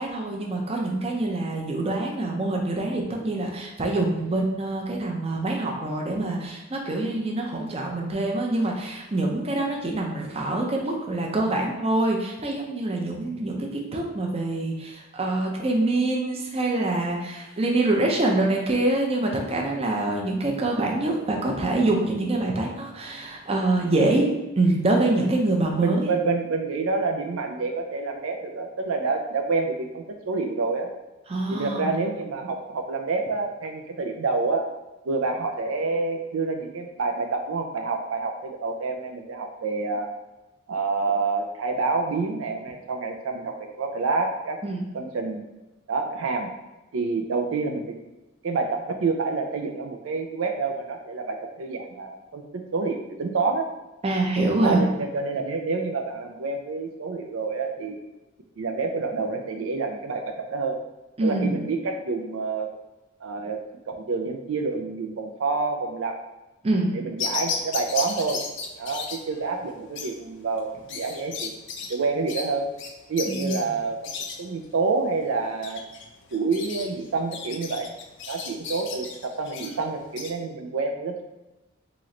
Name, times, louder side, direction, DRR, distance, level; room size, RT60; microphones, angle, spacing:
voice 1, 0.0-24.3 24.5-26.2 31.3-32.0 44.6-44.8 54.0-54.8 61.2-61.6 66.6-66.9 73.3-73.5, right 2 dB, 30° right, 0 dB, 0.5 m, -25 dB
voice 2, 25.8-30.9 31.5-34.6 35.1-40.1 40.7-44.6 44.9-45.4 45.9-46.5 46.9-47.9 48.4-53.7 54.6-58.0 58.6-60.8 61.2-62.7 63.2-63.6 63.9-66.2 66.9-68.4 68.8-71.6 71.9-72.7 73.1-75.8 76.3-77.9 78.3-81.2, right 4 dB, 75° right, 4 dB, 0.4 m, -28 dB
sound 1, 67.2-80.3, left 5 dB, 60° left, 0.5 m, -35 dB
3.1 x 3.0 x 3.7 m, 1.0 s
head